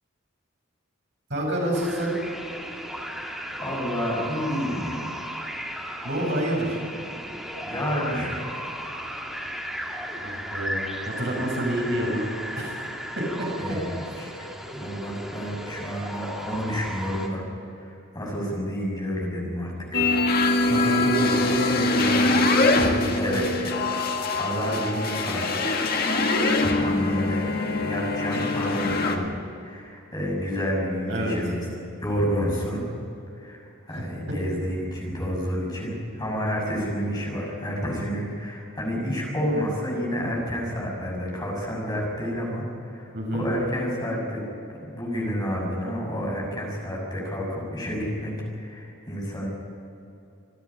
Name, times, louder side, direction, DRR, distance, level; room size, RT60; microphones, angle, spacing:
voice 1, 1.3-2.1 6.0-6.8 10.1-12.3 12.5-12.7 13.2-13.8 14.2-14.3 20.7-23.4 31.1-31.3 33.9-34.0 43.1-43.5, right 1 dB, 55° right, -2 dB, 7.1 m, -28 dB
sound 1, 1.7-17.3, equal, ahead, 2.4 m, -35 dB
voice 2, 3.6-5.1 7.7-8.6 13.6-17.5 17.8-20.1 23.1-23.8 24.3-25.9 26.7-27.4 27.7-33.0 33.4-44.5 44.9-49.5, equal, 20° left, -2 dB, 6.4 m, -30 dB
sound 2, 19.9-29.2, left 2 dB, 45° left, 1.8 m, -23 dB
27.0 x 10.5 x 10.0 m, 2.8 s
head